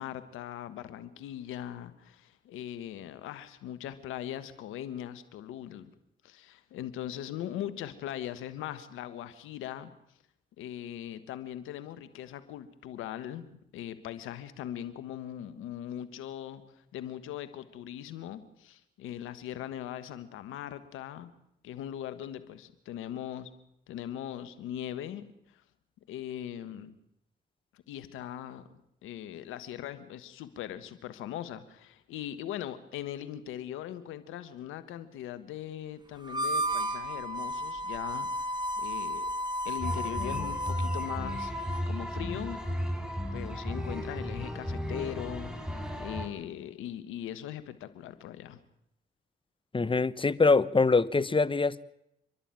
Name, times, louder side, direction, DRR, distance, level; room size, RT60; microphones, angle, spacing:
voice 1, 0.0-5.9 6.2-9.9 10.6-16.6 16.9-21.3 21.6-23.5 23.9-25.2 26.1-26.9 27.7-28.7 29.0-38.3 38.8-39.2 39.6-41.5 41.9-42.6 43.3-45.7 46.0-48.6, left 11 dB, 90° left, 12 dB, 1.5 m, -40 dB
Harmonica, 36.2-41.9, equal, 20° right, 3.1 m, -33 dB
sound 1, 39.8-46.3, equal, 5° right, 4.6 m, -35 dB
voice 2, 49.7-51.8, left 4 dB, 25° left, 17 dB, 1.1 m, -24 dB
28.5 x 11.5 x 9.0 m, 0.79 s
supercardioid pair, 55°, 20 cm